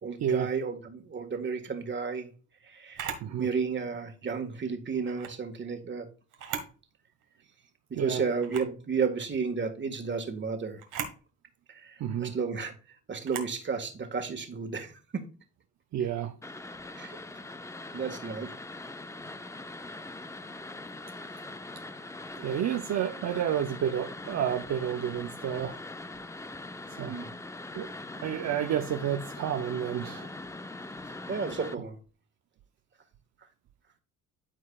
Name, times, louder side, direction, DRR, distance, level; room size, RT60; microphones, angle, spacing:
voice 1, 0.0-2.3 2.6-3.1 3.4-6.1 7.9-10.8 11.7-12.7 13.1-15.2 16.9-17.2 17.9-18.5 25.5-25.7 27.1-27.3 31.3-32.0, right 5 dB, 40° right, 1.7 m, -32 dB
Camera, 2.9-3.3 5.0-5.4 6.3-6.8 7.2-7.3 8.4-8.8 10.8-11.2 13.2-13.6, right 8 dB, 90° right, 1.6 m, -37 dB
voice 2, 3.2-3.5 7.9-8.2 12.0-12.4 15.9-16.3 22.4-25.8 26.9-27.2 27.7-27.9 28.2-30.3, right 9 dB, 60° right, 0.7 m, -30 dB
sound 1, 16.4-31.8, left 2 dB, 10° left, 0.5 m, -42 dB
12.5 x 4.6 x 2.4 m
cardioid pair, 90°, 30 cm